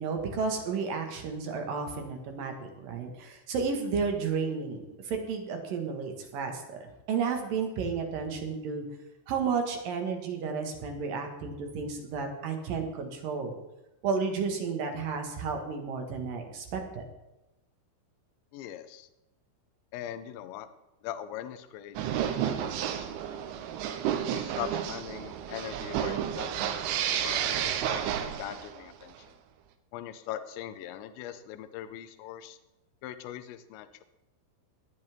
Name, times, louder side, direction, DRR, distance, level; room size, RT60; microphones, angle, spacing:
voice 1, 0.0-8.8 9.3-13.5 14.0-17.0, right 5 dB, 60° right, 3 dB, 2.9 m, -32 dB
voice 2, 18.5-19.1 19.9-20.7 21.0-23.4 24.3-29.1 29.9-32.6 33.0-34.0, left 11 dB, 80° left, 10 dB, 3.0 m, -41 dB
sound 1, 22.0-28.8, right 9 dB, 85° right, 3.4 m, -31 dB
19.0 x 12.0 x 3.6 m, 0.97 s
omnidirectional pair, 5.4 m